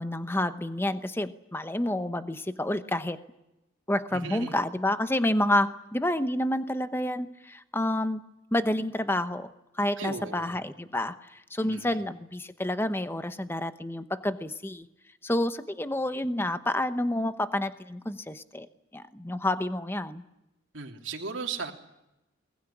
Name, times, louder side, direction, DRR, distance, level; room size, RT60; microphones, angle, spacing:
voice 1, 0.0-3.2 3.9-8.2 8.5-9.5 9.8-11.2 11.5-14.9 15.2-18.7 18.9-20.2, left 1 dB, 10° left, 10 dB, 0.9 m, -29 dB
voice 2, 4.1-4.5 10.0-10.6 11.6-12.0 20.7-21.7, right 4 dB, 80° right, 1 dB, 2.9 m, -36 dB
22.0 x 19.5 x 9.9 m, 0.91 s
head